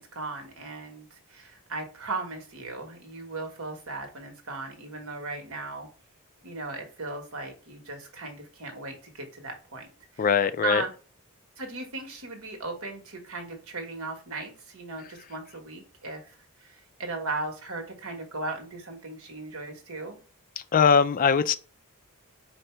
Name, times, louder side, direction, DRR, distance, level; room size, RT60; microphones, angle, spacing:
voice 1, 0.0-5.9 6.4-9.9 10.1-10.9 11.6-20.2, right 3 dB, 70° right, 1.4 m, -37 dB
voice 2, 10.2-10.8 20.7-21.5, left 6 dB, 40° left, 0.4 m, -21 dB
4.5 x 2.6 x 4.4 m
head